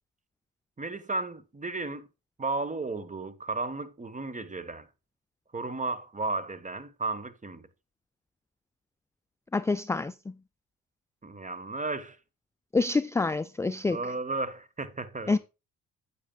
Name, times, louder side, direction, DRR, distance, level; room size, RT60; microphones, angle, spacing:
voice 1, 0.8-2.1 2.4-4.9 5.5-7.6 11.2-12.2 13.9-15.4, right 3 dB, 25° right, 1.3 m, -34 dB
voice 2, 9.5-10.1 12.7-14.0 15.3-15.4, left 3 dB, 10° left, 0.4 m, -26 dB
8.8 x 8.4 x 2.3 m
supercardioid pair, 65°, 34 cm